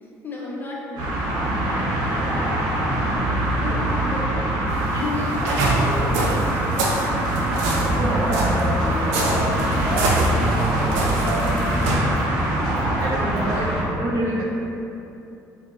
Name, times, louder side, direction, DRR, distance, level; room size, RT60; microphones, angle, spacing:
voice 1, 0.2-1.2 3.6-4.5 4.9-6.5, left 2 dB, 25° left, -5 dB, 0.9 m, -31 dB
sound 1, 1.0-13.8, right 1 dB, 65° right, 0.9 m, -23 dB
voice 2, 3.7-4.3 4.9-5.0 7.7-11.9 13.0-14.4, right 1 dB, 45° right, -7 dB, 1.1 m, -28 dB
sound 2, 4.7-12.0, right 2 dB, 85° right, 0.5 m, -26 dB
Drum kit, 5.9-6.5 6.9-7.0 7.2-8.4 8.8-9.0 9.3-10.3 10.7-10.8 11.1-12.3 12.6-13.6, right 1 dB, 10° left, 1.2 m, -34 dB
4.6 x 2.2 x 2.4 m, 2.8 s
hypercardioid pair, 60°, 8 cm